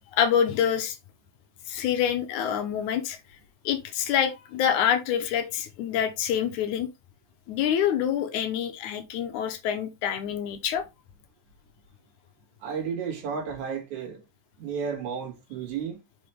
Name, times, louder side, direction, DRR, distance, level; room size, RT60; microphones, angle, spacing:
voice 1, 0.1-1.0 1.7-3.2 3.7-6.9 7.5-10.9, left 9 dB, 75° left, 2.2 m, -26 dB
voice 2, 12.6-14.2 14.6-16.0, right 6 dB, 65° right, 3.2 m, -32 dB
6.0 x 5.3 x 3.3 m
omnidirectional pair, 3.7 m